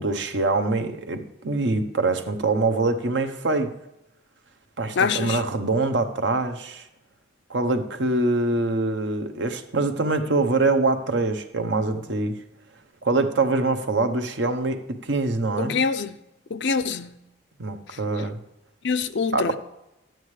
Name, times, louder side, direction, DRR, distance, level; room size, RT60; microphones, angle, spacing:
voice 1, 0.0-3.7 4.8-6.8 7.5-12.4 13.0-15.7 17.6-18.4 19.3-19.6, right 3 dB, 65° right, 0.9 m, -24 dB
voice 2, 5.0-5.4 15.6-16.1 16.5-17.1 18.8-19.6, left 5 dB, 65° left, 0.5 m, -24 dB
12.0 x 9.1 x 3.2 m
head